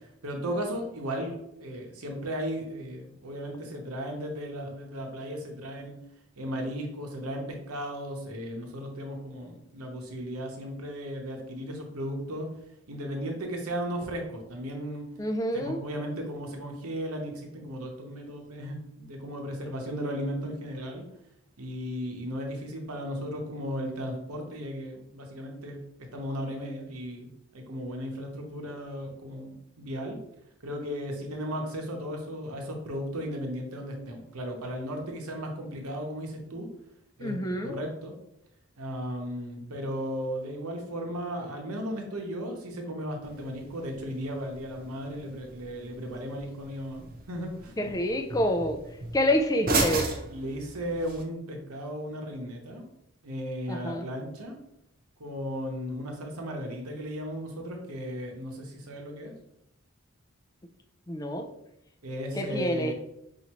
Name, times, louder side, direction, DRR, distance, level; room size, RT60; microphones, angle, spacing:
voice 1, 0.2-6.0 6.4-12.5 12.9-15.0 15.5-21.0 21.6-25.8 26.1-30.2 30.6-36.7 37.2-38.1 38.8-47.7 50.3-52.8 53.2-54.6 55.2-59.3 62.0-62.9, equal, 90° right, 2 dB, 0.9 m, -35 dB
voice 2, 15.2-15.8 37.2-37.8 47.8-48.8 49.1-50.1 53.7-54.0 61.1-61.5 62.4-62.9, equal, 15° left, 5 dB, 0.3 m, -27 dB
sound 1, 43.2-51.2, right 3 dB, 40° right, 0.5 m, -35 dB
5.5 x 2.6 x 2.9 m, 0.79 s
head